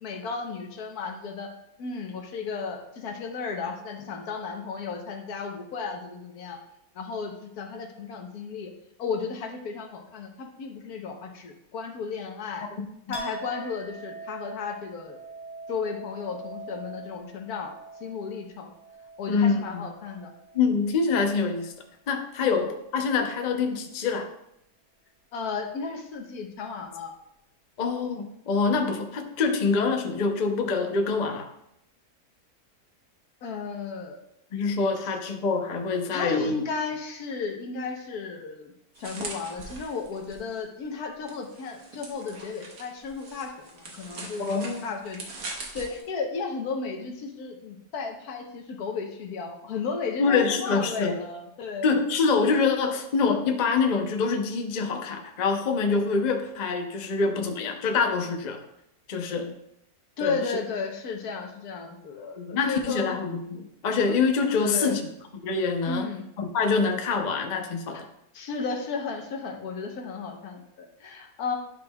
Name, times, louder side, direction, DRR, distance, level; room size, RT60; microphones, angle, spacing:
voice 1, 0.0-1.5 1.8-6.6 6.9-8.7 9.0-12.7 13.1-15.2 15.7-17.7 18.0-18.7 19.2-20.3 22.4-22.6 25.3-27.1 33.4-34.2 36.1-38.7 39.0-51.9 60.2-63.2 64.6-65.0 65.9-66.2 67.9-68.0 68.3-71.6, left 4 dB, 85° left, 3 dB, 1.4 m, -34 dB
voice 2, 12.8-13.1 19.3-19.9 20.5-21.7 22.1-24.3 27.8-31.5 34.5-36.5 44.4-45.0 50.2-51.2 51.8-58.6 59.1-59.5 60.2-60.4 62.4-65.1 65.4-66.1 66.4-68.0, left 4 dB, 45° left, 4 dB, 0.6 m, -25 dB
Chink clink, 13.1-20.8 21.1-21.8, right 2 dB, 35° right, 1.4 m, -43 dB
sound 1, 38.9-40.6 41.3-46.0, right 3 dB, 75° right, 1.6 m, -41 dB
10.5 x 5.3 x 2.3 m, 0.80 s
omnidirectional pair, 1.6 m